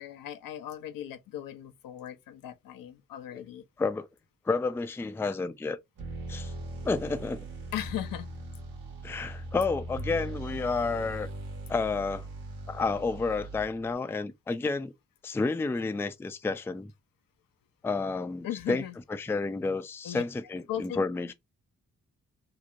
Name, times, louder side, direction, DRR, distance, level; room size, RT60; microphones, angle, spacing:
voice 1, 0.0-3.6 7.7-8.3 18.4-18.9 20.0-20.2 20.7-20.9, left 11 dB, 70° left, 0.5 m, -37 dB
voice 2, 4.5-5.8 6.3-6.5 6.8-7.5 9.0-11.3 11.7-12.2 12.7-14.9 15.2-16.9 17.8-18.8 19.1-21.3, left 4 dB, 5° left, 0.3 m, -30 dB
sound 1, 6.0-13.9, right 2 dB, 70° right, 1.2 m, -40 dB
2.9 x 2.0 x 2.4 m
supercardioid pair, 45°, 35 cm